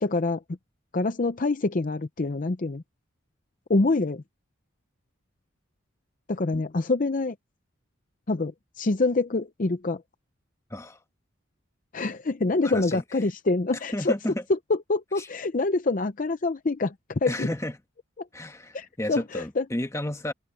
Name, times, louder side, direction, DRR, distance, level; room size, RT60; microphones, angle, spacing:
voice 1, 0.0-0.4 0.9-2.8 3.7-4.2 6.3-7.3 8.3-10.0 11.9-14.1 14.5-17.5 18.2-18.3 18.7-19.6, left 3 dB, 40° left, 0.6 m, -26 dB
voice 2, 12.6-13.0 13.9-14.4 15.2-15.3 17.3-17.8 18.3-20.3, left 1 dB, 15° left, 1.3 m, -32 dB
open air
head